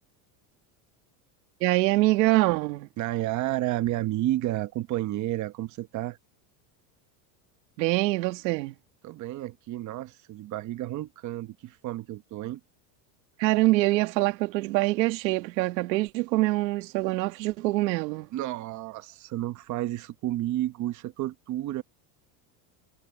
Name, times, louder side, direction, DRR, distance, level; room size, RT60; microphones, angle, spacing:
voice 1, 1.6-2.9 7.8-8.7 13.4-18.3, right 19 dB, 90° right, 1.9 m, -24 dB
voice 2, 3.0-6.2 9.0-12.6 18.3-21.8, right 15 dB, 35° right, 1.0 m, -31 dB
supercardioid pair, 145°, 49 cm